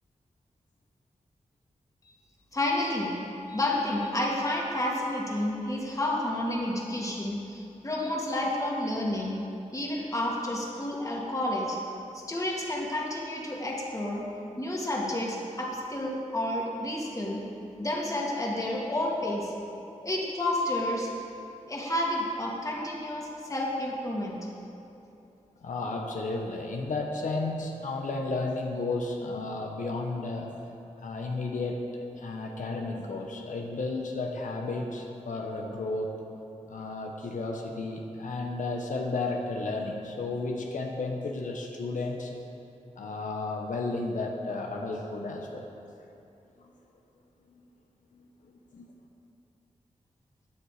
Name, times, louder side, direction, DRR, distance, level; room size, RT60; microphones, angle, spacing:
voice 1, 2.5-3.1 3.5-9.4 9.7-11.8 12.1-14.2 14.6-17.4 17.8-19.5 20.0-21.1 21.7-24.4, left 1 dB, 25° left, -2 dB, 2.2 m, -30 dB
voice 2, 25.6-30.5 31.0-31.9 32.2-36.1 36.7-42.3 43.0-45.7 46.6-46.7 47.5-47.6 48.1-48.9, left 3 dB, 90° left, 1 dB, 1.2 m, -33 dB
16.0 x 9.8 x 5.0 m, 2.8 s
wide cardioid pair, 120°, 13 cm